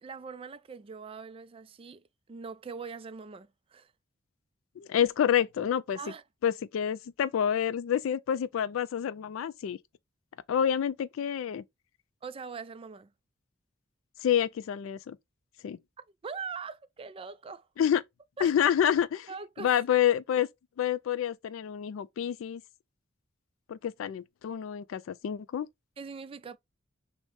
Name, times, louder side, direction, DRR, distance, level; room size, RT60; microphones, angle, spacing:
voice 1, 0.0-3.9 6.0-6.2 12.2-13.1 16.0-17.7 18.4-18.5 19.3-19.7 26.0-26.6, right 5 dB, 25° right, 0.3 m, -42 dB
voice 2, 4.8-6.0 6.4-9.8 10.5-11.6 14.2-15.2 15.6-15.8 17.8-18.0 18.4-19.3 19.6-20.5 20.8-22.6 23.7-25.7, left 9 dB, 75° left, 0.3 m, -28 dB
6.1 x 2.1 x 3.6 m
head